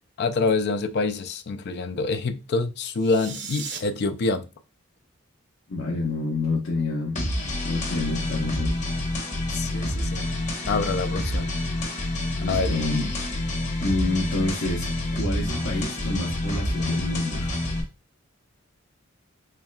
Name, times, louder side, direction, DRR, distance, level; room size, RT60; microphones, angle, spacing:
voice 1, 0.2-4.5 9.5-10.3 10.7-11.5 12.5-12.8 17.4-17.5, left 3 dB, 55° left, 0.4 m, -26 dB
sound 1, 2.9-3.8, right 6 dB, 60° right, 0.7 m, -36 dB
voice 2, 5.7-7.2 7.6-8.8 12.4-13.3 13.8-14.9 15.1-17.4, left 2 dB, 70° left, 0.9 m, -28 dB
sound 2, 7.2-17.8, left 1 dB, 35° left, 1.2 m, -28 dB
4.5 x 3.2 x 2.3 m
head